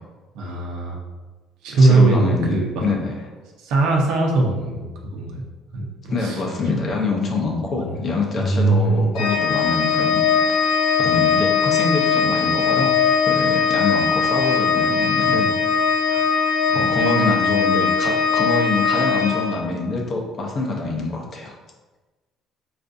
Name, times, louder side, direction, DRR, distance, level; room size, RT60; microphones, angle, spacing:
voice 1, 0.3-1.0 1.6-2.7 3.6-4.8 5.1-5.4 5.7-5.9 6.2-6.7 7.7-8.0 8.4-9.1, right 3 dB, 65° right, 0 dB, 0.6 m, -20 dB
voice 2, 1.7-3.1 6.1-10.3 11.0-12.9 13.2-15.5 16.1-16.2 16.7-21.5, left 3 dB, 35° left, 0 dB, 0.6 m, -25 dB
Organ, 9.2-20.0, left 6 dB, 80° left, 0.4 m, -20 dB
4.4 x 2.5 x 2.5 m, 1.2 s
cardioid pair, 160°, 0 cm